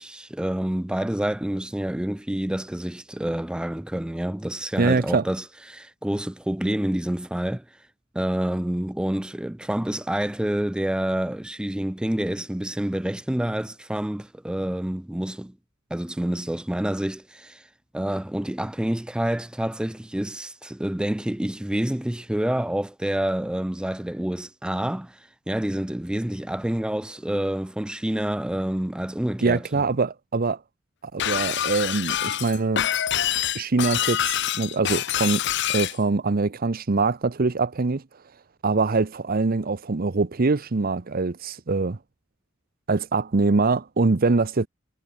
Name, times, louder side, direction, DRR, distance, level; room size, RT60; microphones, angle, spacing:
voice 1, 0.0-7.7 8.1-15.6 15.9-17.7 17.9-29.8, right 1 dB, 5° right, 0.3 m, -28 dB
voice 2, 4.8-5.2 29.4-30.6 31.0-32.9 33.5-35.4 35.7-38.0 38.6-42.0 42.9-44.7, right 3 dB, 45° right, 0.7 m, -23 dB
Shatter, 31.2-36.0, left 11 dB, 60° left, 0.8 m, -26 dB
head